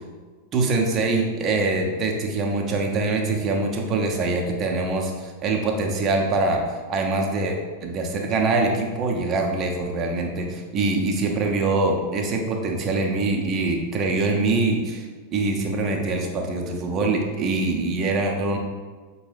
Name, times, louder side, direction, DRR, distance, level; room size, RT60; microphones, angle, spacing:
voice 1, 0.5-18.6, right 3 dB, 30° right, 1 dB, 0.6 m, -24 dB
5.1 x 2.2 x 3.3 m, 1.4 s
figure-of-eight pair, 90°, 0 cm